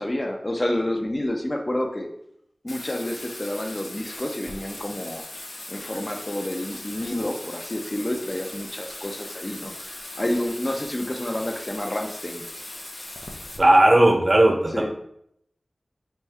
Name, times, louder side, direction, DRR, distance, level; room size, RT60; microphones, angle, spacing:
voice 1, 0.0-2.1 2.6-5.2 5.7-12.4 14.7-14.9, left 1 dB, 30° left, 3 dB, 0.6 m, -29 dB
Bathtub (filling or washing), 2.7-13.6, left 2 dB, 80° left, 0.7 m, -39 dB
voice 2, 13.6-14.9, right 1 dB, 40° right, 2 dB, 0.8 m, -16 dB
4.4 x 2.7 x 3.4 m, 0.72 s
wide cardioid pair, 60°, 0 cm